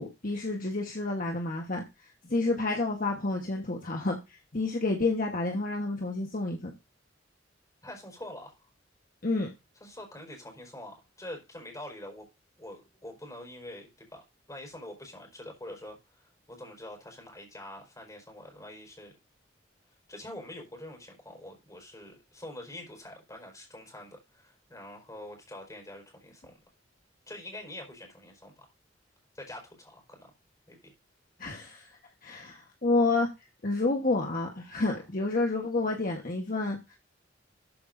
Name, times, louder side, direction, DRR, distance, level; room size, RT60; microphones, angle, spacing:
voice 1, 0.0-1.8 2.2-4.2 4.5-6.8 9.2-9.5 31.4-31.9 32.2-33.3 33.6-37.0, left 2 dB, 45° left, 1.4 m, -29 dB
voice 2, 7.8-8.7 9.8-12.3 12.6-19.1 20.1-26.6 27.3-28.7 29.3-30.3 30.7-30.9 34.8-35.0, left 1 dB, 20° left, 4.5 m, -45 dB
13.5 x 8.1 x 2.7 m
head